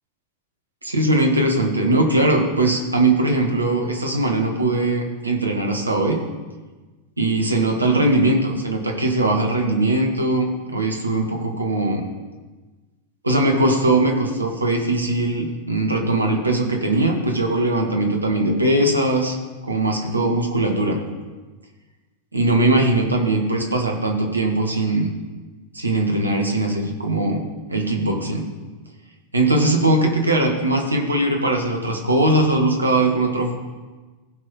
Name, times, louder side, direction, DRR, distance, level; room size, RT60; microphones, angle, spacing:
voice 1, 0.8-6.2 7.2-12.0 13.2-19.4 19.7-21.0 22.3-25.1 25.7-28.5 29.3-33.5, right 2 dB, 80° right, 1 dB, 1.6 m, -20 dB
16.0 x 5.4 x 4.3 m, 1.3 s
figure-of-eight pair, 90°, 0 cm